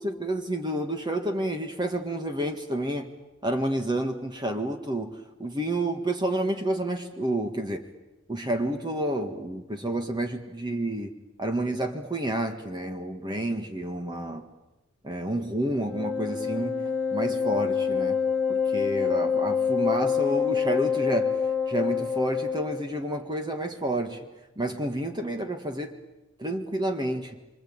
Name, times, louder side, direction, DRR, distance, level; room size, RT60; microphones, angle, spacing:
voice 1, 0.0-3.1 3.4-7.9 8.3-11.1 11.4-14.5 15.0-16.8 17.1-18.2 18.5-21.4 21.7-24.2 24.6-25.9 26.4-27.4, right 1 dB, 20° right, 5 dB, 1.7 m, -29 dB
Wind instrument woodwind instrument, 15.8-22.8, left 6 dB, 10° left, 2.7 m, -26 dB
27.0 x 25.0 x 8.7 m, 1.0 s
head